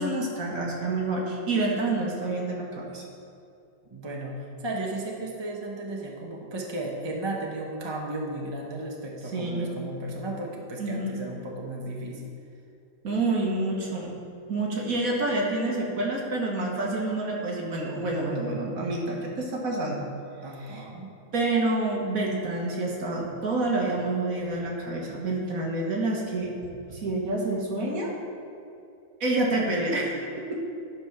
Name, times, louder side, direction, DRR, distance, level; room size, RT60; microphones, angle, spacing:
voice 1, 0.0-3.0 9.3-9.7 10.8-11.1 13.0-14.1 14.5-20.0 20.6-20.8 21.3-26.5 26.9-28.1 29.2-30.6, right 2 dB, 55° right, -2 dB, 1.8 m, -28 dB
voice 2, 3.9-12.3 20.4-21.1, right 2 dB, 20° right, -1 dB, 0.8 m, -34 dB
10.5 x 5.3 x 5.9 m, 2.5 s
omnidirectional pair, 1.9 m